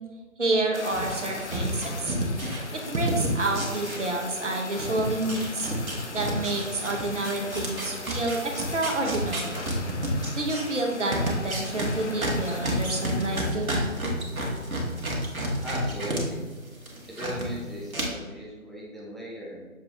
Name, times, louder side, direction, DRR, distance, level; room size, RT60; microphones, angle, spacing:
voice 1, 0.4-2.2 2.7-5.7 6.1-9.6 10.4-13.7, right 2 dB, 60° right, 2 dB, 0.9 m, -29 dB
Fire, 0.7-13.6, left 3 dB, 55° left, 0.5 m, -40 dB
sound 1, 0.9-4.5 4.7-16.2 16.5-17.5 17.9-18.0, right 1 dB, 80° right, 1.3 m, -31 dB
voice 2, 15.6-16.4 17.2-19.6, equal, ahead, -5 dB, 0.5 m, -37 dB
6.6 x 2.5 x 3.2 m, 1.4 s
figure-of-eight pair, 170°, 42 cm